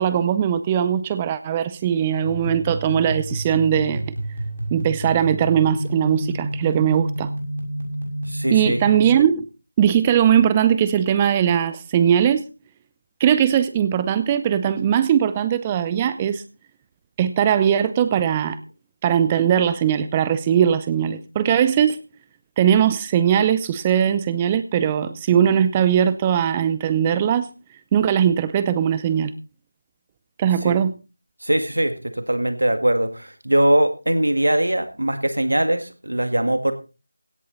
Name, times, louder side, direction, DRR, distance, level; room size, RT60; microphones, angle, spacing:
voice 1, 0.0-4.1 4.7-7.3 8.5-9.5 9.8-12.4 13.2-16.4 17.2-18.6 19.0-22.0 22.6-27.5 27.9-29.3 30.4-30.9, right 9 dB, 15° right, 13 dB, 0.6 m, -20 dB
sound 1, 2.2-9.1, right 1 dB, 50° right, 6.7 m, -29 dB
voice 2, 8.3-8.8 30.6-30.8 31.4-36.7, right 1 dB, 75° right, 9 dB, 1.8 m, -21 dB
17.0 x 10.5 x 4.0 m, 0.33 s
figure-of-eight pair, 165°, 0 cm